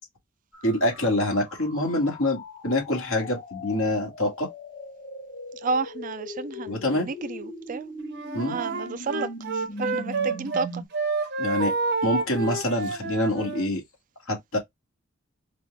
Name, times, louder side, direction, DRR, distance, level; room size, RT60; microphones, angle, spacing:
sound 1, 0.5-10.9, left 1 dB, 40° left, 2.1 m, -40 dB
voice 1, 0.6-4.5 6.7-7.1 8.3-8.6 11.4-11.7 12.0-13.8 14.3-14.6, left 1 dB, 70° left, 2.1 m, -26 dB
voice 2, 5.6-7.9 8.4-9.3 9.5-10.8, right 4 dB, 40° right, 0.4 m, -31 dB
Wind instrument woodwind instrument, 8.1-10.7 10.9-13.7, right 4 dB, 55° right, 0.8 m, -29 dB
4.9 x 2.5 x 3.3 m
head